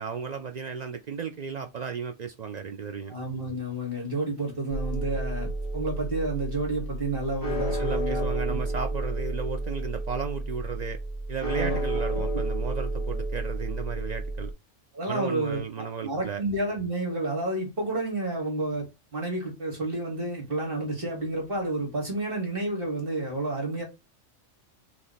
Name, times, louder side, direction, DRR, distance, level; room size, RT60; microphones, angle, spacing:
voice 1, 0.0-3.1 7.8-11.0 11.3-14.5 15.1-16.4, right 6 dB, 70° right, 0.4 m, -34 dB
voice 2, 3.1-8.6 11.5-11.8 14.9-18.9 19.1-23.8, right 2 dB, 50° right, 1.6 m, -30 dB
sound 1, 4.7-14.5, right 2 dB, 15° left, 1.6 m, -31 dB
3.6 x 2.9 x 4.0 m
omnidirectional pair, 1.3 m